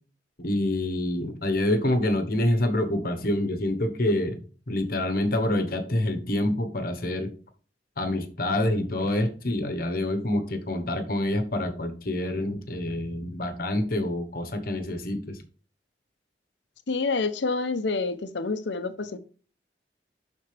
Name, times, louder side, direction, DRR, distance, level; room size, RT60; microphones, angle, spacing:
voice 1, 0.4-4.4 4.7-7.3 8.0-15.4, left 1 dB, 55° left, 1.2 m, -27 dB
voice 2, 16.9-19.2, left 3 dB, 85° left, 0.8 m, -28 dB
11.5 x 4.2 x 3.4 m
head